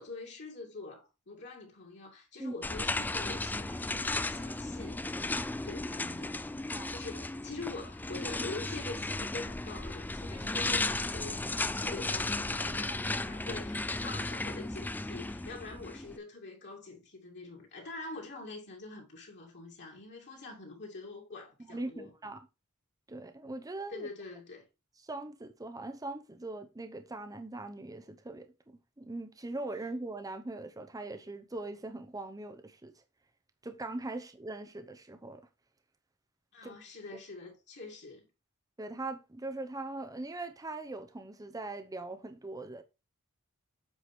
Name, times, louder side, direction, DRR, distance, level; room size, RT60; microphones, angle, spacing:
voice 1, 0.0-5.0 5.6-6.4 6.7-22.1 23.9-24.7 36.5-38.3, left 3 dB, 55° left, 2.6 m, -45 dB
sound 1, 2.6-16.2, left 2 dB, 10° left, 0.3 m, -35 dB
voice 2, 21.6-22.5 23.1-24.1 25.0-32.9 33.6-35.5 36.6-36.8 38.8-42.8, right 2 dB, 15° right, 0.7 m, -41 dB
8.1 x 4.7 x 4.5 m
head